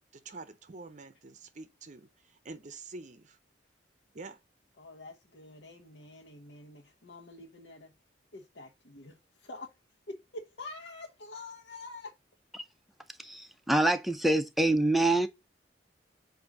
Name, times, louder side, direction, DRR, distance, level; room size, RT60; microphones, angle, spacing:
voice 1, 0.1-3.4 4.1-4.4, right 3 dB, 40° right, 0.6 m, -47 dB
voice 2, 4.8-7.9 8.3-9.7 10.1-12.1, left 2 dB, 70° left, 1.0 m, -46 dB
voice 3, 13.2-15.3, right 2 dB, ahead, 0.5 m, -26 dB
7.7 x 2.7 x 4.7 m
head